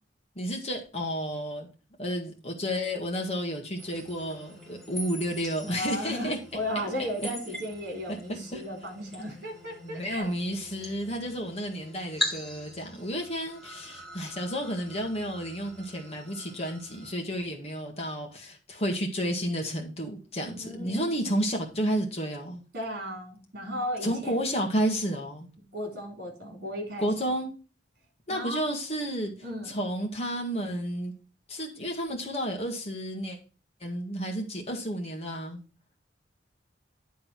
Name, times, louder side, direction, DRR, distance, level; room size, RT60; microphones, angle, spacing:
voice 1, 0.4-1.7 2.0-6.4 7.2-7.3 8.1-8.6 9.8-22.6 24.0-25.5 27.0-27.5 28.3-29.3 29.7-31.1 31.5-33.4 33.8-35.6, equal, 35° left, 1 dB, 1.8 m, -31 dB
sound 1, 3.8-17.1, equal, ahead, 3.1 m, -41 dB
voice 2, 5.6-10.3 20.5-21.1 22.7-24.3 25.7-27.1 28.3-28.7 29.4-29.8, equal, 55° right, 2 dB, 3.7 m, -35 dB
10.0 x 3.8 x 6.0 m, 0.35 s
head